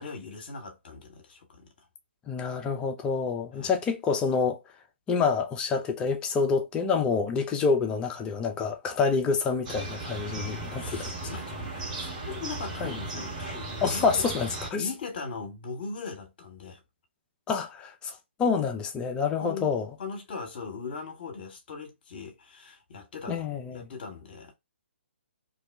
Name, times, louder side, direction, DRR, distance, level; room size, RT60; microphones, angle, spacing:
voice 1, 0.0-1.7 3.6-3.7 10.8-14.2 14.7-16.8 19.4-19.7 20.0-23.5 23.7-24.6, left 4 dB, 55° left, 0.8 m, -40 dB
voice 2, 2.3-4.6 5.1-11.1 12.8-13.0 13.8-14.9 17.5-19.9 23.3-23.9, left 5 dB, 15° left, 0.4 m, -27 dB
sound 1, 9.6-14.7, right 2 dB, 35° right, 1.4 m, -36 dB
2.6 x 2.1 x 3.3 m
figure-of-eight pair, 135°, 6 cm